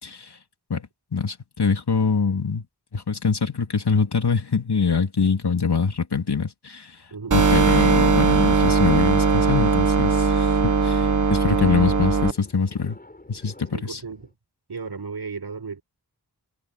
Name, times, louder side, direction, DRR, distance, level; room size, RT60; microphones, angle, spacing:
voice 1, 0.0-0.4 0.7-0.9 1.1-2.7 2.9-7.0 7.3-13.0 13.3-14.0, left 5 dB, 80° left, 3.1 m, -24 dB
voice 2, 7.1-7.5 13.7-14.3 14.7-15.8, right 5 dB, 75° right, 4.9 m, -35 dB
sound 1, 7.3-12.3, right 5 dB, 50° right, 1.2 m, -19 dB
sound 2, 7.4-14.3, left 1 dB, 25° left, 5.6 m, -45 dB
wide cardioid pair, 75°, 39 cm